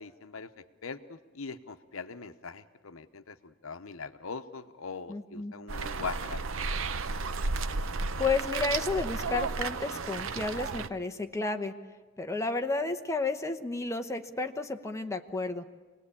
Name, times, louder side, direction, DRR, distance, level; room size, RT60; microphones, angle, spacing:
voice 1, 0.0-6.6, left 4 dB, 80° left, 10 dB, 0.9 m, -41 dB
voice 2, 5.1-5.5 8.2-11.7 12.2-15.6, left 3 dB, 15° left, 5 dB, 0.9 m, -32 dB
sound 1, 5.7-10.9, right 4 dB, 65° right, 0.7 m, -33 dB
26.0 x 18.5 x 8.5 m, 1.3 s
head